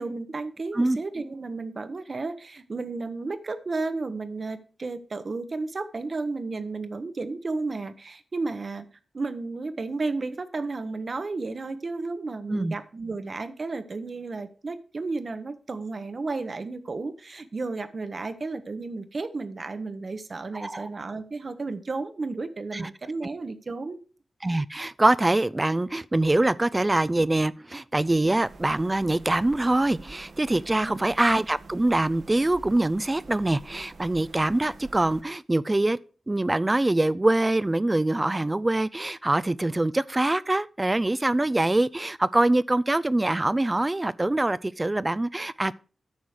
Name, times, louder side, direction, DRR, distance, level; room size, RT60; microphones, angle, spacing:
voice 1, 0.0-8.8 9.1-24.0 30.7-31.0, right 3 dB, 45° right, 0.9 m, -33 dB
voice 2, 24.4-36.0 36.3-45.7, right 2 dB, 20° right, 0.4 m, -24 dB
sound 1, 28.4-35.2, right 3 dB, 75° right, 1.4 m, -47 dB
9.4 x 6.3 x 4.9 m
wide cardioid pair, 110°, 0 cm